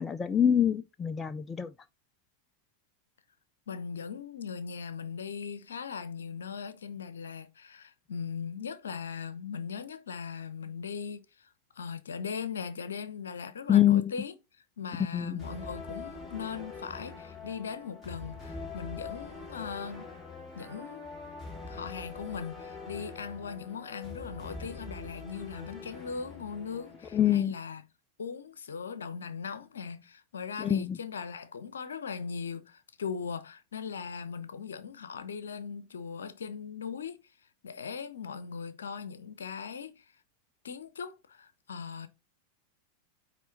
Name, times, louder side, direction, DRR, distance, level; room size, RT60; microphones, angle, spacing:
voice 1, 0.0-1.7 13.7-14.1 15.1-15.4 27.1-27.5 30.6-31.0, left 10 dB, 20° left, 0.4 m, -25 dB
voice 2, 3.7-11.5 11.8-14.3 14.8-20.1 20.5-21.1 21.7-27.8 28.2-37.2 37.6-40.0 40.6-42.1, left 6 dB, 65° left, 0.8 m, -39 dB
sound 1, 15.4-27.4, left 4 dB, ahead, 3.4 m, -44 dB
9.3 x 3.3 x 4.5 m
figure-of-eight pair, 90°, 0 cm